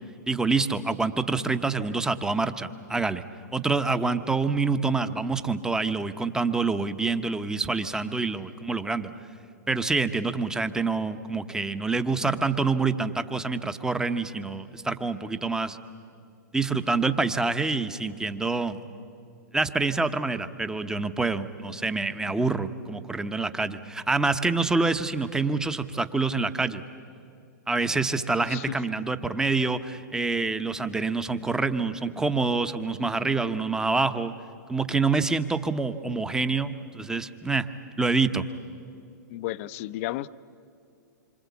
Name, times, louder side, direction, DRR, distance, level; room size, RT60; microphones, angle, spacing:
voice 1, 0.3-3.2 3.5-9.1 9.7-15.8 16.5-18.8 19.5-26.8 27.7-34.3 34.7-37.7 38.0-38.4, right 3 dB, 5° right, 11 dB, 0.9 m, -26 dB
voice 2, 28.4-28.8 39.3-40.3, left 15 dB, 45° left, 16 dB, 0.7 m, -33 dB
26.5 x 25.0 x 8.4 m, 2.5 s
hypercardioid pair, 125°, 10 cm